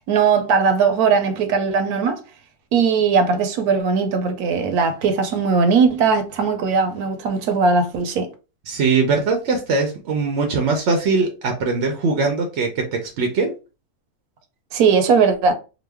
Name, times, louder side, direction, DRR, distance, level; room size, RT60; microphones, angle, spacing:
voice 1, 0.1-2.2 2.7-8.3 14.7-15.5, right 5 dB, 75° right, 1.1 m, -19 dB
voice 2, 8.7-13.5, right 4 dB, 60° right, 0.7 m, -21 dB
3.0 x 2.1 x 3.3 m
omnidirectional pair, 1.6 m